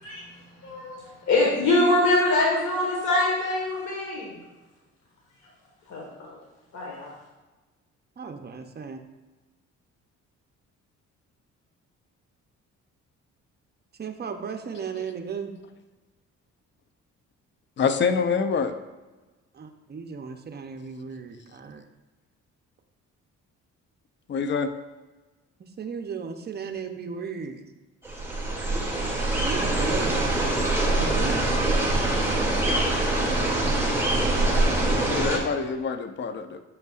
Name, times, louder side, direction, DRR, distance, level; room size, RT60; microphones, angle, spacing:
voice 1, 0.0-4.4 5.9-6.4 6.7-7.1, left 2 dB, 70° left, -4 dB, 1.5 m, -24 dB
voice 2, 8.2-9.0 14.0-15.5 19.5-21.8 25.6-27.7 29.4-30.3 31.0-31.4, right 6 dB, 35° right, 5 dB, 0.7 m, -35 dB
voice 3, 17.8-18.7 24.3-24.7 28.7-29.1 34.9-36.6, left 5 dB, 40° left, 9 dB, 0.5 m, -26 dB
sound 1, 28.0-35.4, right 2 dB, 10° right, 1.5 m, -24 dB
7.6 x 5.4 x 2.4 m, 1.2 s
cardioid pair, 90°, 30 cm